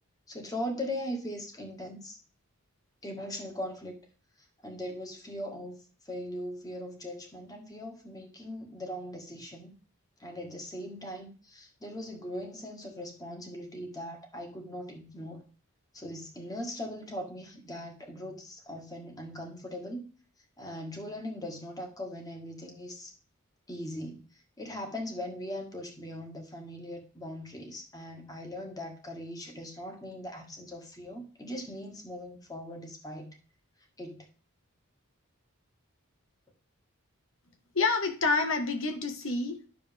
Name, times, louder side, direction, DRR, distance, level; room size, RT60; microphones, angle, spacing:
voice 1, 0.3-2.2 3.0-4.0 4.6-9.7 10.2-15.4 15.9-20.1 20.6-23.1 23.7-24.3 24.6-33.3 34.0-34.3, left 1 dB, 15° left, 2 dB, 1.8 m, -40 dB
voice 2, 37.7-39.7, left 3 dB, 65° left, 5 dB, 1.5 m, -28 dB
10.0 x 6.7 x 3.5 m, 0.39 s
head